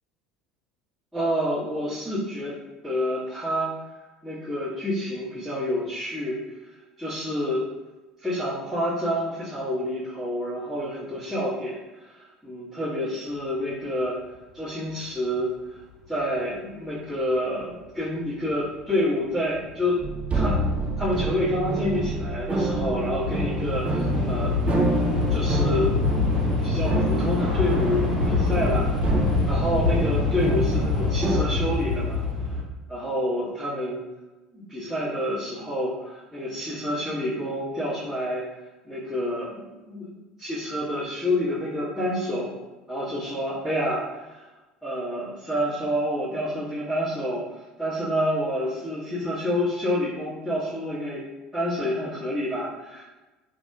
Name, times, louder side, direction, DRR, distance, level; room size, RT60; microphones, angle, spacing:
voice 1, 1.1-2.5 2.8-3.7 4.2-6.4 7.0-7.7 8.2-15.5 16.1-20.0 20.3-20.6 21.0-24.5 25.3-25.9 26.6-32.2 32.9-34.0 34.5-38.5 38.8-40.1 40.4-42.5 42.9-44.4 44.8-47.4 47.8-51.2 51.5-53.0, equal, 5° right, -15 dB, 1.4 m, -28 dB
Train / Subway metro underground, 18.6-18.7 19.5-19.8 20.0-32.6, left 4 dB, 85° right, 1.1 m, -26 dB
sound 1, 20.0-31.5, right 2 dB, 30° right, 0.4 m, -28 dB
3.3 x 2.7 x 2.2 m, 1.1 s
figure-of-eight pair, 70°, 4 cm